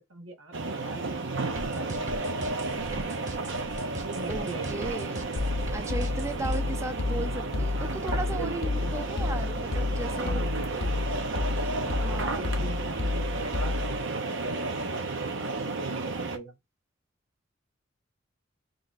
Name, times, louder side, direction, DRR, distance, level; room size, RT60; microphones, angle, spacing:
voice 1, 0.0-2.8 3.9-5.2 7.7-8.8 10.2-10.9 11.7-14.9 15.4-16.6, right 3 dB, 85° right, 1.2 m, -41 dB
sound 1, 0.5-16.4, right 3 dB, 65° right, 0.8 m, -33 dB
sound 2, 1.6-6.6, right 1 dB, 40° right, 0.9 m, -39 dB
voice 2, 4.3-5.2 5.7-10.4 11.8-12.6, right 2 dB, 15° right, 0.4 m, -36 dB
sound 3, 5.4-14.0, left 3 dB, 55° left, 0.6 m, -30 dB
3.4 x 2.5 x 4.0 m
head